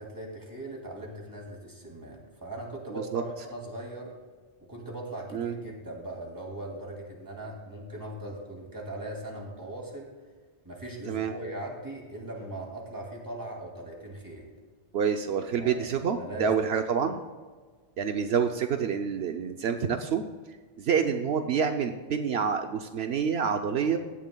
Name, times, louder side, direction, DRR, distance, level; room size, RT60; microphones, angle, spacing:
voice 1, 0.0-4.1 4.6-10.1 10.6-14.4 15.5-16.6, right 1 dB, 20° right, -1 dB, 2.5 m, -39 dB
voice 2, 2.9-3.2 5.3-5.5 11.1-11.3 14.9-17.2 18.0-20.2 20.8-24.0, right 7 dB, 75° right, 6 dB, 0.9 m, -27 dB
16.0 x 11.5 x 2.3 m, 1.4 s
omnidirectional pair, 1.1 m